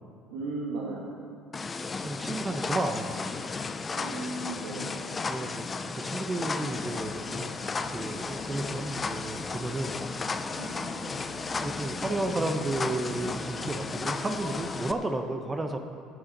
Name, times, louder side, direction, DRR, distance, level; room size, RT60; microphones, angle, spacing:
voice 1, 0.3-1.1 3.9-5.0 10.6-11.0, right 3 dB, 75° right, -4 dB, 1.6 m, -36 dB
sound 1, 1.5-14.9, left 4 dB, 30° left, 0.7 m, -34 dB
voice 2, 2.0-3.4 5.3-7.5 7.9-10.0 11.6-15.8, right 2 dB, 25° right, 6 dB, 1.0 m, -32 dB
sound 2, 6.6-14.7, left 2 dB, 80° left, 1.5 m, -49 dB
14.0 x 9.0 x 4.2 m, 2.4 s
hypercardioid pair, 60°, 0 cm